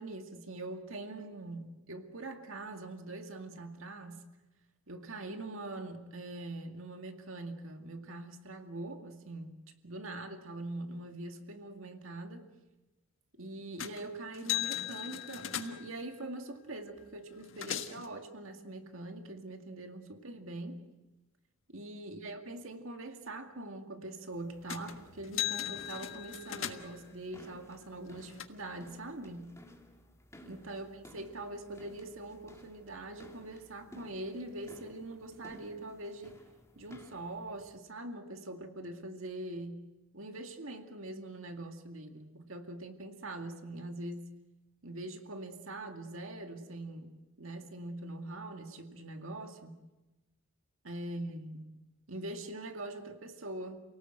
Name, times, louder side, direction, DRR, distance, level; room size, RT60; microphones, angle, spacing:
voice 1, 0.0-4.2 4.9-12.5 13.4-20.9 21.7-29.5 30.4-36.4 36.8-39.8 40.1-44.3 44.8-49.8 50.8-51.7 52.1-53.8, right 2 dB, 70° right, 5 dB, 2.2 m, -43 dB
sound 1, 13.8-14.1 14.3-16.0 17.0-17.1 17.3-18.1 24.7-25.0 25.2-27.0 27.8-28.4, left 11 dB, 65° left, 1.5 m, -37 dB
sound 2, 24.3-37.8, equal, 15° left, 2.3 m, -57 dB
29.0 x 18.5 x 7.9 m, 1.1 s
head